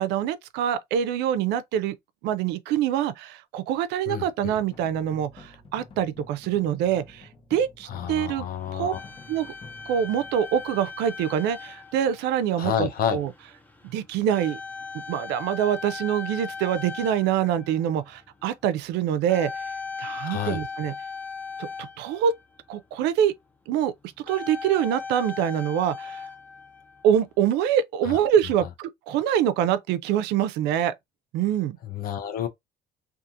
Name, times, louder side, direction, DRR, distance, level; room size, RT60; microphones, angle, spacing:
voice 1, 0.0-2.0 2.2-8.5 8.7-8.9 9.3-9.5 9.9-13.3 13.8-14.6 14.9-19.6 20.0-20.9 21.6-22.3 22.7-23.3 23.7-26.2 27.0-30.9 31.3-31.8, right 9 dB, 90° right, 0.4 m, -25 dB
voice 2, 4.1-4.5 7.9-9.0 12.6-13.2 20.2-20.6 28.1-28.2 31.9-32.5, left 9 dB, 60° left, 0.7 m, -29 dB
sound 1, 4.4-11.6, left 2 dB, 30° left, 0.9 m, -49 dB
sound 2, 8.2-22.7 24.2-27.5, left 5 dB, 10° left, 0.6 m, -39 dB
2.7 x 2.4 x 2.5 m
cardioid pair, 110°, 17 cm